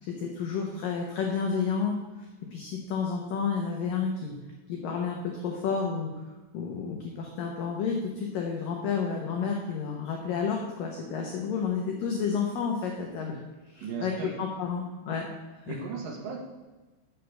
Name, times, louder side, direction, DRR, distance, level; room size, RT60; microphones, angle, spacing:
voice 1, 0.0-4.3 4.7-6.1 6.5-13.4 13.7-15.3 15.7-15.8, left 6 dB, 85° left, 1 dB, 1.9 m, -31 dB
voice 2, 13.8-14.3 15.7-16.4, right 5 dB, 65° right, -1 dB, 2.4 m, -36 dB
7.5 x 6.6 x 8.0 m, 1.2 s
omnidirectional pair, 5.4 m